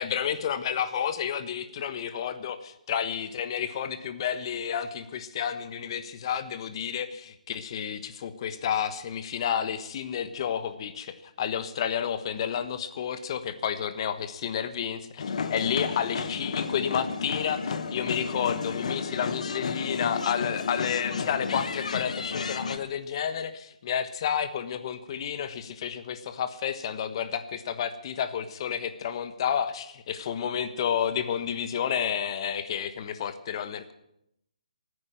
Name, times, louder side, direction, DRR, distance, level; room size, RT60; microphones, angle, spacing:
voice 1, 0.0-33.9, left 8 dB, 40° left, 12 dB, 1.2 m, -31 dB
india ceremony in vashist, 15.2-22.8, left 5 dB, 60° left, 1.2 m, -32 dB
14.5 x 9.7 x 9.0 m, 0.79 s
hypercardioid pair, 150°, 4 cm